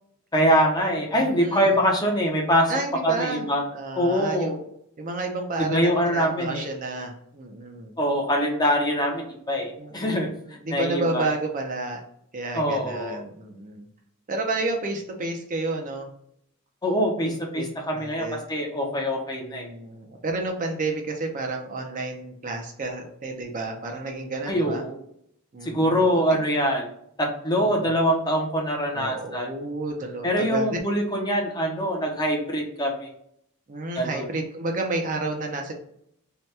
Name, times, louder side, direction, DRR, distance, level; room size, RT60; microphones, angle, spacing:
voice 1, 0.3-2.7 3.0-3.6 4.0-4.6 5.6-6.6 8.0-10.3 10.7-11.3 12.5-13.2 16.8-19.7 24.5-25.0 25.6-26.9 27.2-29.5 30.2-33.1 34.0-34.3, equal, 20° left, 1 dB, 0.6 m, -24 dB
voice 2, 1.1-1.8 2.7-3.5 3.7-4.6 5.0-7.9 9.8-12.0 12.3-13.9 14.3-16.1 17.2-18.4 19.3-24.8 25.5-26.4 27.6-27.9 28.9-30.8 33.7-35.7, right 2 dB, 40° right, 3 dB, 0.5 m, -31 dB
2.8 x 2.2 x 3.2 m, 0.71 s
head